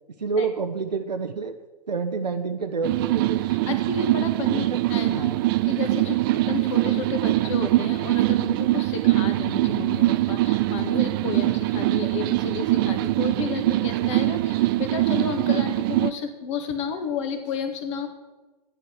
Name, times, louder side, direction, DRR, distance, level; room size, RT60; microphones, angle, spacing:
voice 1, 0.2-1.6 1.9-3.4 4.5-4.8 5.1-5.4, right 5 dB, 80° right, 6 dB, 0.7 m, -28 dB
sound 1, 2.8-16.1, right 17 dB, 35° right, 0.4 m, -23 dB
voice 2, 3.5-5.3 5.6-18.1, left 6 dB, 45° left, 7 dB, 1.7 m, -32 dB
12.0 x 9.8 x 4.6 m, 1.2 s
figure-of-eight pair, 110°, 21 cm